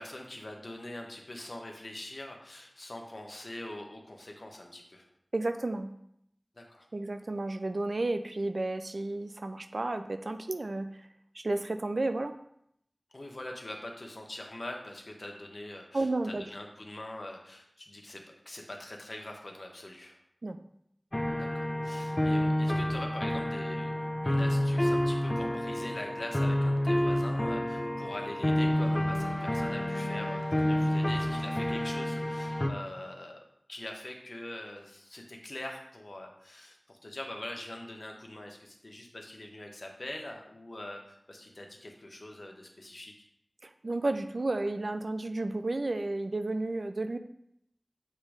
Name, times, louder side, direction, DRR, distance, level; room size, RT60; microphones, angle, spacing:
voice 1, 0.0-5.1 6.5-6.9 13.1-20.2 21.4-33.4 33.7-43.1, left 1 dB, 70° left, 2 dB, 1.0 m, -43 dB
voice 2, 5.3-5.9 6.9-11.1 11.3-12.3 15.9-16.4 20.4-20.6 43.6-47.2, right 2 dB, 85° right, 8 dB, 0.4 m, -32 dB
sound 1, 21.1-32.7, left 1 dB, 30° left, 0.8 m, -29 dB
7.5 x 3.1 x 4.9 m, 0.74 s
wide cardioid pair, 50°, 0 cm